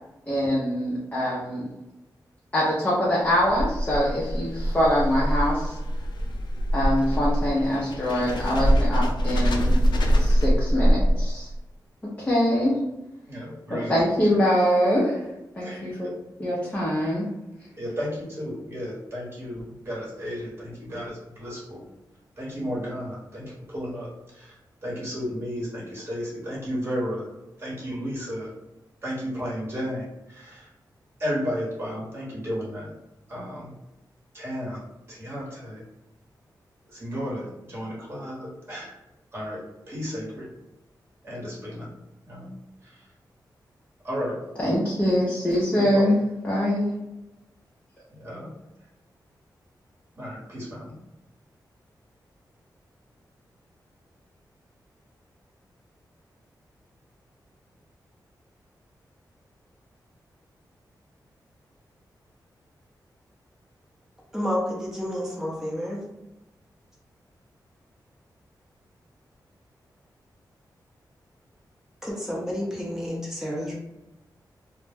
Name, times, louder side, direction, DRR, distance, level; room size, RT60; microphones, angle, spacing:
voice 1, 0.3-1.7 2.5-5.8 6.7-9.7 10.2-11.5 12.2-12.8 13.7-15.2 15.5-16.1 16.4-17.3 44.6-46.1 46.4-46.9, equal, 20° left, -7 dB, 0.6 m, -24 dB
sound 1, 3.3-11.6, equal, 80° left, 0.4 m, -23 dB
voice 2, 13.3-13.9 15.6-15.9 17.8-21.8 22.4-24.5 24.8-27.3 27.6-28.5 29.0-30.7 31.2-32.9 33.3-33.7 34.3-34.8 35.1-35.8 36.9-38.9 39.3-40.5 41.2-41.9 42.3-42.5 42.8-43.0 44.0-44.4 45.7-46.1 48.1-48.5 50.2-50.9, equal, 30° right, -5 dB, 1.0 m, -33 dB
voice 3, 64.3-66.0 72.0-73.8, equal, 5° right, -5 dB, 0.8 m, -30 dB
2.2 x 2.1 x 3.3 m, 0.96 s
wide cardioid pair, 105°, 8 cm